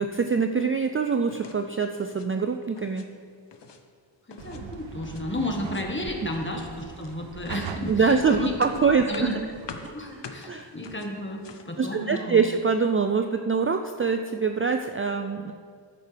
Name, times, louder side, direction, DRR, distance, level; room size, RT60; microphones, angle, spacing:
voice 1, 0.0-3.1 7.9-9.3 9.8-10.7 11.8-15.5, right 5 dB, 30° right, 6 dB, 0.4 m, -24 dB
sound 1, 1.3-1.6 1.9-2.3 2.6-3.1 3.3-3.8 4.3-5.3 5.5-6.0 6.3-11.8, left 5 dB, 65° left, 0.9 m, -45 dB
voice 2, 4.3-8.5 9.1-9.3 9.9-12.4, left 1 dB, 25° left, 1 dB, 1.6 m, -32 dB
sound 2, 4.4-9.9, right 6 dB, 85° right, 0.7 m, -41 dB
13.5 x 8.8 x 3.4 m, 2.1 s
wide cardioid pair, 95°, 45 cm